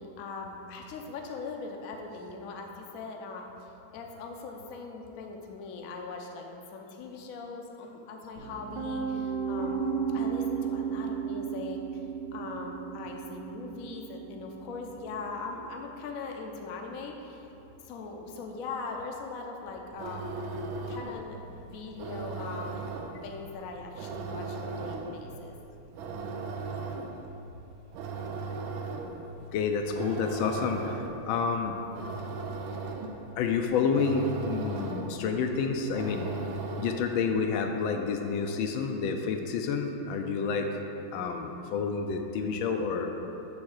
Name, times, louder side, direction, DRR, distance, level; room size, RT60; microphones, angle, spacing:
voice 1, 0.0-12.0 12.3-17.5 17.8-20.5 20.9-23.0 23.2-25.5, left 4 dB, 65° left, 2 dB, 0.8 m, -40 dB
Piano, 8.4-20.3, right 6 dB, 70° right, 1.7 m, -36 dB
sound 1, 19.8-37.3, right 4 dB, 85° right, 1.5 m, -38 dB
voice 2, 29.5-31.8 33.4-36.3 36.8-40.7 41.1-43.1, left 5 dB, 80° left, 5 dB, 1.3 m, -29 dB
7.5 x 3.5 x 6.3 m, 2.9 s
omnidirectional pair, 2.2 m